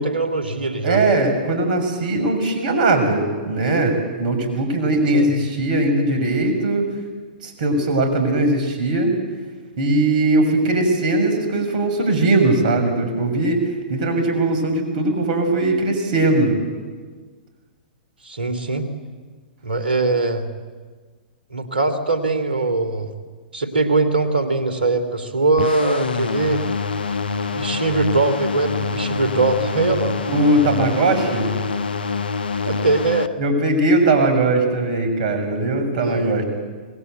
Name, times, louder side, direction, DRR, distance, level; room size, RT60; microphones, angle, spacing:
voice 1, 0.0-1.0 5.1-5.3 18.2-18.9 19.6-20.5 21.5-23.1 23.5-26.6 27.5-30.2 32.6-33.3 36.0-36.4, right 3 dB, 85° right, 10 dB, 3.0 m, -21 dB
voice 2, 0.8-6.9 7.4-9.2 9.8-16.6 30.3-31.5 33.4-36.4, right 2 dB, 55° right, 6 dB, 6.6 m, -19 dB
sound 1, 25.6-33.3, left 5 dB, 75° left, 1.0 m, -25 dB
26.0 x 20.5 x 8.3 m, 1.5 s
hypercardioid pair, 115°, 5 cm